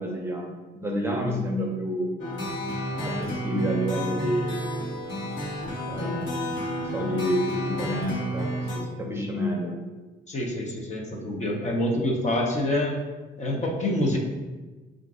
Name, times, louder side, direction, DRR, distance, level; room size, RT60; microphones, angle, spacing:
voice 1, 0.0-2.2 3.0-4.7 5.9-6.7 6.9-9.7, equal, 10° right, -1 dB, 0.8 m, -29 dB
sound 1, 2.2-8.8, equal, 70° left, 1.3 m, -31 dB
voice 2, 10.3-12.9 13.4-14.2, left 1 dB, 35° left, -1 dB, 0.8 m, -26 dB
4.4 x 2.6 x 3.7 m, 1.3 s
cardioid pair, 90°, 20 cm